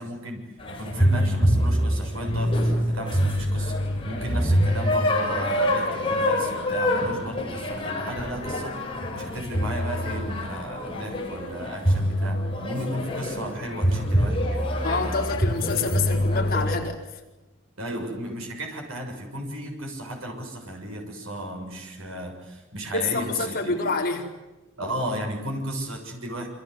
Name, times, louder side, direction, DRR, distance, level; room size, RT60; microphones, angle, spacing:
voice 1, 0.0-3.8 4.0-8.7 9.1-14.7 17.8-23.8 24.8-26.5, right 1 dB, 75° right, 2 dB, 6.8 m, -34 dB
sound 1, 0.6-16.8, equal, 25° left, 6.5 m, -25 dB
voice 2, 14.8-17.2 22.9-24.2, left 4 dB, 45° left, 0 dB, 4.6 m, -27 dB
28.0 x 26.0 x 8.1 m, 1.1 s
head